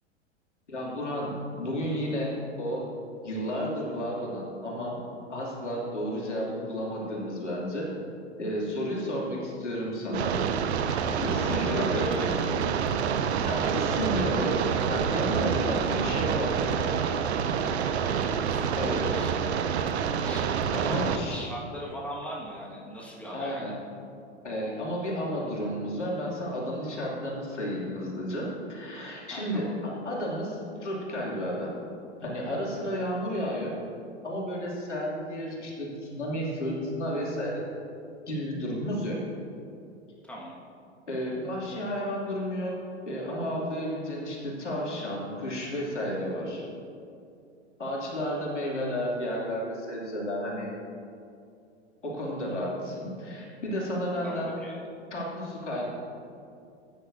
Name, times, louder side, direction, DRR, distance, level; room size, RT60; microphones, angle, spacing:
voice 1, 0.7-2.8 3.2-5.0 5.3-7.9 8.4-10.4 10.8-12.7 13.4-16.7 18.1-18.3 18.8-19.0 20.7-21.4 23.3-23.7 24.4-31.7 32.2-33.7 34.2-37.6 38.3-39.2 41.1-42.7 43.1-46.6 47.8-50.7 52.0-54.5 55.1-55.8, equal, 85° left, -4 dB, 2.7 m, -32 dB
sound 1, 10.1-21.2, right 7 dB, 65° right, 0.8 m, -27 dB
voice 2, 11.3-12.5 13.4-13.8 18.4-19.4 20.2-23.7 29.3-29.8 40.3-40.6 54.2-54.8, equal, 5° left, -4 dB, 1.6 m, -39 dB
15.5 x 9.2 x 2.7 m, 2.6 s
figure-of-eight pair, 100°, 35 cm